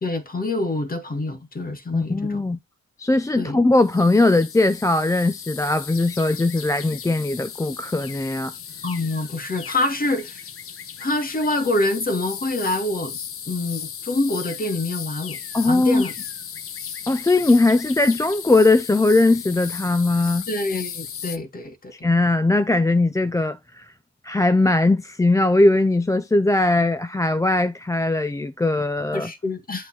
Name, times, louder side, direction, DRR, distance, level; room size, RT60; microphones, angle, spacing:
voice 1, 0.0-2.4 3.4-3.6 8.8-10.4 11.0-13.2 13.5-15.4 15.7-16.1 20.5-21.9 29.1-29.9, left 2 dB, 30° left, 2.1 m, -26 dB
voice 2, 1.9-2.6 3.0-8.5 15.5-16.0 17.1-20.5 22.0-23.9 24.2-29.3, left 2 dB, 10° left, 0.5 m, -19 dB
sound 1, 3.8-21.4, left 8 dB, 45° left, 0.9 m, -36 dB
8.4 x 4.0 x 4.2 m
cardioid pair, 90°, 30 cm